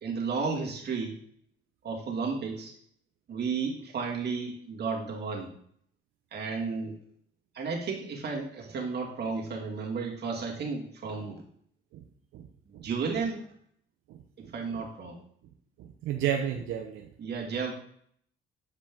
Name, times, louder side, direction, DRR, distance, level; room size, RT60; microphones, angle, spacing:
voice 1, 0.0-1.2 1.8-2.7 3.3-5.5 6.3-7.0 7.5-11.4 12.7-13.4 14.4-15.2 17.2-17.7, right 5 dB, 55° right, -2 dB, 1.9 m, -33 dB
voice 2, 14.1-14.5 15.8-17.1, right 9 dB, 90° right, 3 dB, 0.6 m, -32 dB
7.2 x 5.1 x 3.5 m, 0.65 s
cardioid pair, 90°, 20 cm